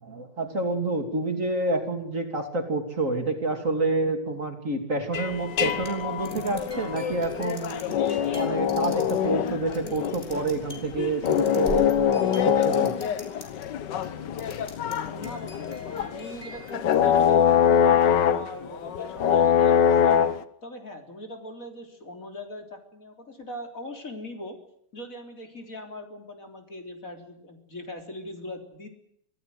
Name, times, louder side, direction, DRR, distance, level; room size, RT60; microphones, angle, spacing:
voice 1, 0.0-7.9 8.3-13.1, right 2 dB, 45° right, 5 dB, 3.3 m, -28 dB
sound 1, 5.1-20.4, left 8 dB, 85° left, 1.7 m, -24 dB
sound 2, 5.6-13.7 14.0-14.9 15.2-17.6, right 1 dB, 25° left, 5.3 m, -44 dB
voice 2, 15.1-20.2 20.6-24.6 24.9-28.9, left 1 dB, 50° left, 4 dB, 4.1 m, -40 dB
25.5 x 16.5 x 7.9 m, 0.69 s
omnidirectional pair, 1.8 m